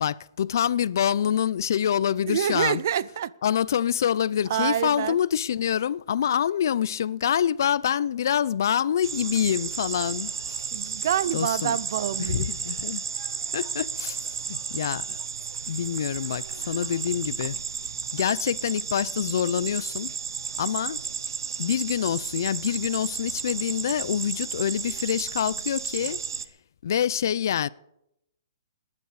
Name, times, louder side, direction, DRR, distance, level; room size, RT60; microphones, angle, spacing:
voice 1, 0.0-2.8 3.4-10.6 11.3-11.7 12.2-13.0 13.5-15.2 15.7-17.6 18.1-20.1 20.6-21.0 21.6-26.2 26.8-27.7, left 9 dB, 55° left, 0.4 m, -26 dB
voice 2, 2.3-3.3 4.5-5.2 10.7-12.5, right 10 dB, 45° right, 0.4 m, -27 dB
sound 1, 9.0-26.4, right 6 dB, 80° right, 0.9 m, -33 dB
19.5 x 10.5 x 4.8 m
hypercardioid pair, 175°, 2 cm